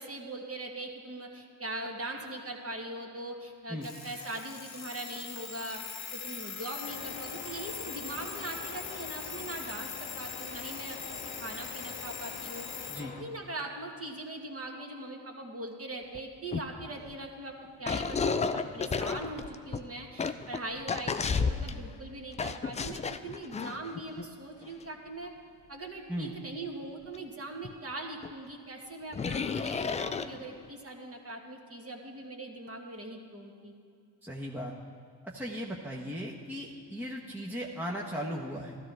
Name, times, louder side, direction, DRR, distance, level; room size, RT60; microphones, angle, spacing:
voice 1, 0.0-5.8 6.1-12.7 13.0-17.5 17.8-25.3 25.7-33.8, right 2 dB, 30° right, 1 dB, 1.8 m, -41 dB
Alarm, 3.8-13.1, left 6 dB, 35° left, 1.0 m, -42 dB
sound 1, 6.8-13.2, left 5 dB, 85° left, 1.1 m, -45 dB
sound 2, 16.1-16.2 16.5-17.3 17.9-21.9 22.4-24.3 24.6-24.8 27.1-27.2 27.6-27.7 28.2-28.3 29.1-30.7, left 5 dB, 15° left, 0.3 m, -32 dB
voice 2, 34.2-34.7 35.2-38.8, equal, 5° right, -2 dB, 1.2 m, -37 dB
12.5 x 12.5 x 3.4 m, 2.3 s
hypercardioid pair, 55°, 47 cm